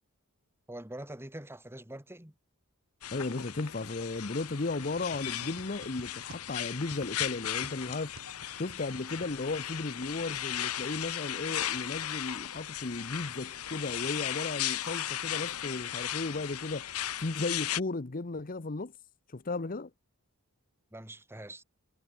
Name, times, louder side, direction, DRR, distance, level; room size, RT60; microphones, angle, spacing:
voice 1, 0.7-2.3 20.9-21.6, right 1 dB, 10° right, 2.2 m, -44 dB
sound 1, 3.0-17.8, left 11 dB, 85° left, 1.2 m, -36 dB
voice 2, 3.1-8.1 8.5-16.9 17.2-18.9 19.3-19.9, left 3 dB, 40° left, 0.9 m, -35 dB
sound 2, 4.8-9.9, right 1 dB, 75° right, 3.4 m, -53 dB
head